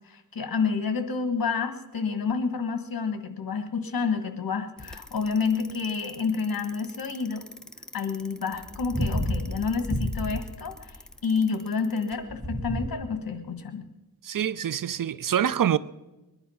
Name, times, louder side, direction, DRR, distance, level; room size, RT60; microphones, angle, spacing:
voice 1, 0.1-7.4 7.9-13.9, left 5 dB, 60° left, 1.6 m, -29 dB
Bicycle, 4.8-12.9, equal, ahead, 0.8 m, -32 dB
voice 2, 14.2-15.8, right 9 dB, 55° right, 0.5 m, -25 dB
22.0 x 11.0 x 5.7 m
wide cardioid pair, 130°, 39 cm